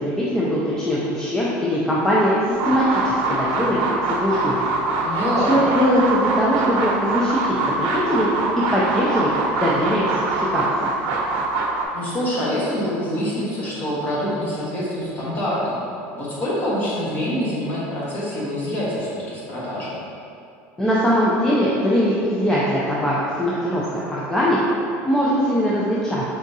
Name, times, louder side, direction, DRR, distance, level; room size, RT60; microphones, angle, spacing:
voice 1, 0.0-4.7 5.5-8.3 8.7-9.3 9.6-10.6 20.8-24.6 25.0-26.2, equal, 10° left, -7 dB, 0.5 m, -21 dB
sound 1, 2.5-11.8, right 3 dB, 70° right, 0.7 m, -23 dB
voice 2, 5.0-5.6 11.9-15.8 16.1-20.0, equal, 30° left, -8 dB, 1.4 m, -25 dB
4.9 x 3.5 x 2.7 m, 2.6 s
supercardioid pair, 135°, 6 cm